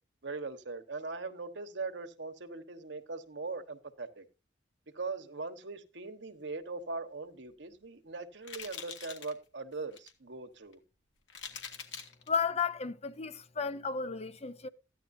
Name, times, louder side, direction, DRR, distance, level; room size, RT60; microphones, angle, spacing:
voice 1, 0.2-4.3 4.9-10.8, right 3 dB, 75° right, 1.3 m, -40 dB
sound 1, 7.5-7.8 8.4-9.3 9.7-10.1 10.7-10.8 11.3-12.3, left 7 dB, 85° left, 2.1 m, -44 dB
voice 2, 12.3-14.7, left 5 dB, 35° left, 0.7 m, -33 dB
14.5 x 10.5 x 2.7 m
head